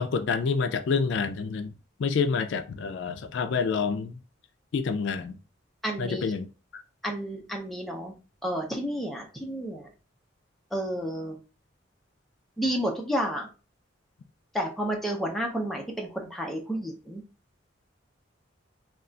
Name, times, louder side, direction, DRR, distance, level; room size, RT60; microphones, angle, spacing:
voice 1, 0.0-1.7 2.0-4.2 4.7-5.3 6.0-6.5 6.7-6.8, left 5 dB, 65° left, 0.3 m, -27 dB
voice 2, 5.8-6.3 7.0-8.1 8.4-9.9 10.7-11.4 12.6-13.5 14.5-17.2, equal, ahead, 0.5 m, -31 dB
2.3 x 2.2 x 3.8 m
head